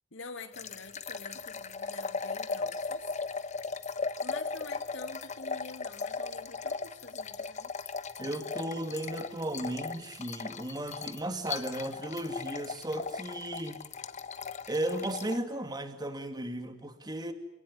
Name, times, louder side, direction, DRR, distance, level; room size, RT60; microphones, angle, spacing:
voice 1, 0.1-3.2 4.2-7.7, left 3 dB, 65° left, 7 dB, 2.8 m, -47 dB
sound 1, 0.5-15.4, left 4 dB, 35° left, 1.0 m, -38 dB
voice 2, 8.2-13.9 14.7-17.3, right 1 dB, 20° right, 8 dB, 2.4 m, -35 dB
27.5 x 18.5 x 9.9 m, 0.99 s
head